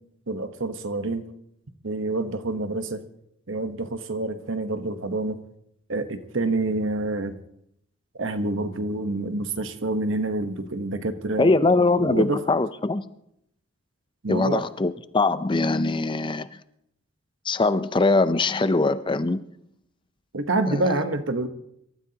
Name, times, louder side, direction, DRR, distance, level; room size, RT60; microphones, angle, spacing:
voice 1, 0.3-1.2 1.8-3.0 3.5-5.4 5.9-7.3 8.2-12.4 14.2-14.6 20.3-21.5, right 2 dB, 65° right, 1.1 m, -27 dB
voice 2, 11.4-13.1 14.3-16.5 17.5-19.4 20.7-20.9, left 3 dB, 25° left, 0.5 m, -22 dB
26.5 x 13.5 x 2.9 m
head